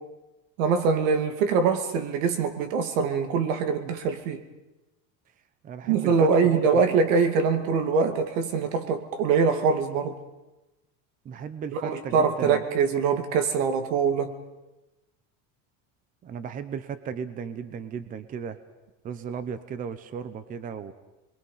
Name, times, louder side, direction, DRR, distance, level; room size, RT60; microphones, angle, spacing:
voice 1, 0.6-4.4 5.9-10.2 11.7-14.3, right 5 dB, 90° right, 7 dB, 2.6 m, -23 dB
voice 2, 5.6-6.8 11.2-12.6 16.2-18.6 19.0-20.9, right 7 dB, 20° right, 12 dB, 0.8 m, -36 dB
29.5 x 22.5 x 5.7 m, 1.0 s
cardioid pair, 170°, 38 cm